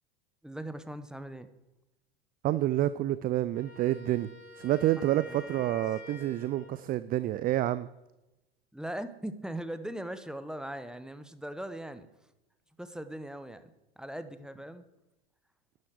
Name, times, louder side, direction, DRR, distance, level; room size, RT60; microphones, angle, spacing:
voice 1, 0.4-1.5 5.2-5.7 8.7-12.1 12.8-14.8, right 1 dB, ahead, 11 dB, 0.9 m, -40 dB
voice 2, 2.4-4.3 4.6-7.9, right 14 dB, 30° right, 16 dB, 0.4 m, -28 dB
Wind instrument woodwind instrument, 3.5-6.9, left 3 dB, 90° left, 3.3 m, -48 dB
11.5 x 10.5 x 4.8 m, 0.97 s
hypercardioid pair, 80°, 33 cm